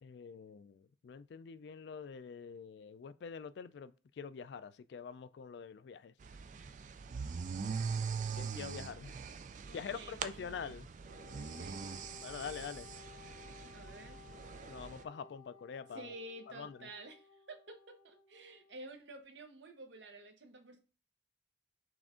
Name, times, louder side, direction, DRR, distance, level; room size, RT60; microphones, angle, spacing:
voice 1, 0.0-6.1 8.4-9.2 9.7-10.9 12.2-12.9 14.7-16.1 16.5-16.9, left 6 dB, 65° left, 0.3 m, -45 dB
sound 1, 6.2-15.0, right 5 dB, 40° right, 0.3 m, -42 dB
voice 2, 9.6-10.7 11.6-11.8 13.7-14.2 15.9-20.8, right 2 dB, 75° right, 0.9 m, -51 dB
Wind instrument woodwind instrument, 11.0-18.7, left 6 dB, 20° left, 0.7 m, -57 dB
6.1 x 2.4 x 3.6 m
head